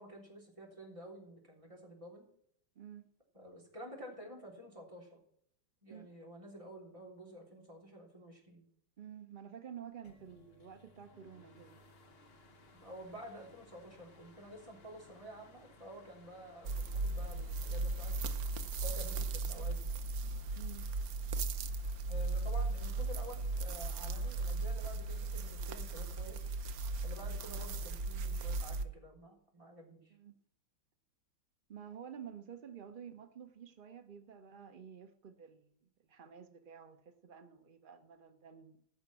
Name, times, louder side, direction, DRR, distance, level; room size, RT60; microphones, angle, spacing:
voice 1, 0.0-2.3 3.3-5.2 5.8-8.7 12.7-16.7 17.0-18.3 18.8-19.9 22.1-26.4 27.0-30.1, equal, 15° right, 3.4 m, -50 dB
voice 2, 9.0-11.8 20.6-20.9 30.1-30.3 31.7-38.8, right 8 dB, 80° right, 0.4 m, -51 dB
sound 1, 10.0-19.4, left 2 dB, 40° left, 0.9 m, -61 dB
sound 2, 16.6-28.8, right 3 dB, 60° right, 1.1 m, -37 dB
15.5 x 6.1 x 6.1 m
omnidirectional pair, 2.2 m